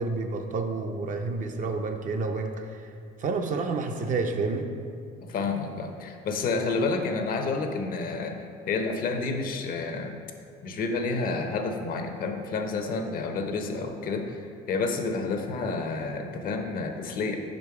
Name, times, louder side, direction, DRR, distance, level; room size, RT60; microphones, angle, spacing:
voice 1, 0.0-2.9 3.2-4.7, right 3 dB, 50° right, 5 dB, 0.6 m, -29 dB
voice 2, 5.2-10.2 10.6-17.4, left 3 dB, 55° left, 5 dB, 0.7 m, -30 dB
5.3 x 5.1 x 4.7 m, 2.3 s
cardioid pair, 110°, 17 cm